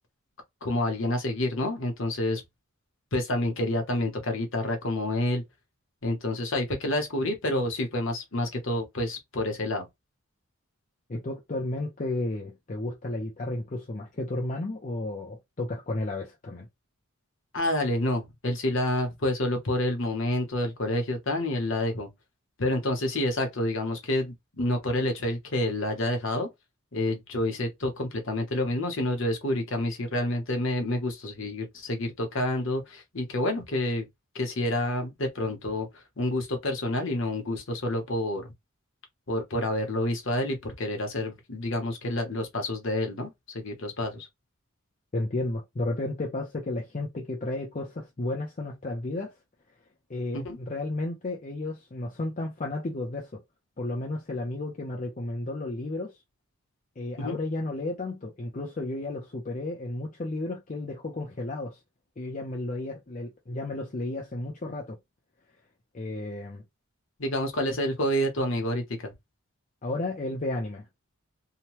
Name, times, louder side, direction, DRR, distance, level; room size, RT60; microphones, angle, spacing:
voice 1, 0.6-2.4 3.1-5.4 6.0-9.9 17.5-22.1 22.6-26.5 26.9-34.0 34.3-38.5 39.3-44.3 50.3-50.6 57.2-57.4 67.2-69.1, left 1 dB, 60° left, 0.9 m, -28 dB
voice 2, 11.1-16.7 45.1-49.3 50.1-53.3 53.8-56.1 57.0-61.8 62.2-65.0 65.9-66.6 69.8-70.9, left 2 dB, 35° left, 0.5 m, -33 dB
2.8 x 2.2 x 3.0 m
head